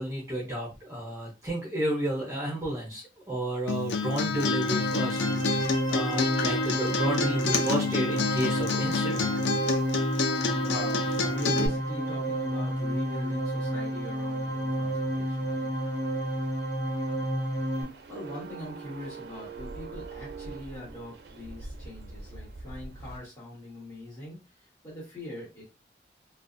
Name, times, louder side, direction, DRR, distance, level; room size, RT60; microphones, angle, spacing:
voice 1, 0.0-9.3 17.1-17.4, right 1 dB, 15° right, -5 dB, 0.7 m, -32 dB
Acoustic guitar, 3.7-11.7, left 4 dB, 85° left, 0.4 m, -29 dB
sound 1, 4.3-17.8, equal, 55° left, 1.2 m, -30 dB
voice 2, 10.6-15.7 18.1-25.6, left 1 dB, 15° left, -6 dB, 1.5 m, -42 dB
sound 2, 17.7-23.2, right 4 dB, 65° right, 0.4 m, -42 dB
2.6 x 2.2 x 2.5 m, 0.29 s
head